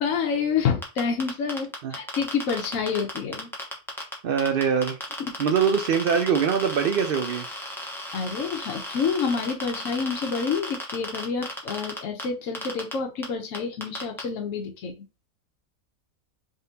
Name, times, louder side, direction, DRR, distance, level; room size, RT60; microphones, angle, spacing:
voice 1, 0.0-3.5 8.1-14.9, left 6 dB, 70° left, 3 dB, 1.0 m, -28 dB
sound 1, 0.8-4.1 4.4-12.2 12.5-12.9 13.2-13.3 13.5-14.2, left 1 dB, ahead, 0.8 m, -34 dB
voice 2, 4.2-5.0 5.4-7.5, right 7 dB, 75° right, 6 dB, 0.5 m, -23 dB
3.8 x 3.5 x 2.7 m, 0.28 s
omnidirectional pair, 1.5 m